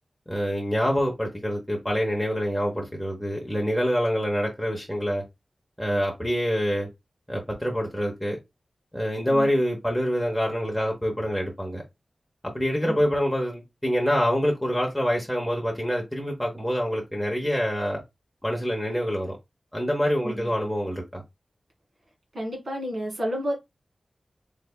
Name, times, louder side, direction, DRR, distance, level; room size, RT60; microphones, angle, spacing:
voice 1, 0.3-5.2 5.8-6.9 7.3-8.4 8.9-11.8 12.5-18.0 18.4-19.4 19.7-21.2, equal, 5° left, 0.9 m, -26 dB
voice 2, 20.2-20.5 22.3-23.5, equal, 75° right, 1.8 m, -31 dB
3.3 x 3.2 x 2.2 m
wide cardioid pair, 70°, 0 cm